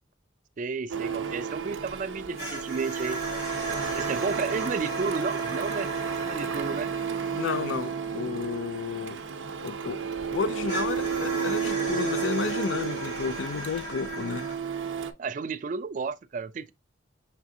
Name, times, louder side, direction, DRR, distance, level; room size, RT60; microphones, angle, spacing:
voice 1, 0.6-3.2 3.9-5.9 6.2-6.9 15.2-16.7, right 4 dB, 40° right, 0.3 m, -32 dB
Printer, 0.9-15.1, right 6 dB, 90° right, 0.6 m, -32 dB
hissing faucet, 2.4-10.0 10.7-14.5, right 1 dB, 50° left, 2.4 m, -39 dB
voice 2, 7.3-9.2 9.6-10.0 10.3-14.5, left 5 dB, 80° left, 0.4 m, -32 dB
5.8 x 3.3 x 2.6 m
head